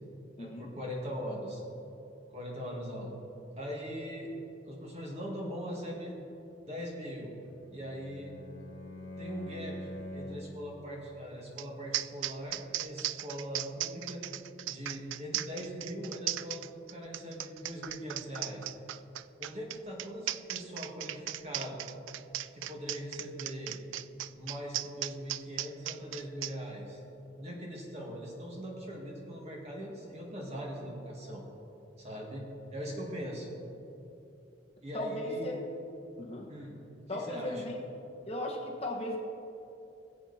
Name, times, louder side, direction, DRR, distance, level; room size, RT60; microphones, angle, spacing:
voice 1, 0.3-1.6 2.3-3.1 3.6-4.3 4.6-6.1 6.7-7.3 7.7-8.3 9.2-14.2 14.6-18.7 19.4-21.8 22.5-23.8 24.3-27.0 27.4-31.4 32.0-32.4 32.7-33.5 34.8-35.6 36.5-36.8 37.1-37.7, equal, 35° right, -2 dB, 2.1 m, -41 dB
Bowed string instrument, 7.4-10.6, left 1 dB, 65° left, 2.5 m, -44 dB
sound 1, 11.6-11.7 11.9-26.5, right 14 dB, 75° right, 0.3 m, -37 dB
voice 2, 34.9-35.5 36.2-36.5 37.1-37.8 38.3-39.2, left 1 dB, 30° left, -1 dB, 1.2 m, -36 dB
20.0 x 7.8 x 4.2 m, 2.9 s
head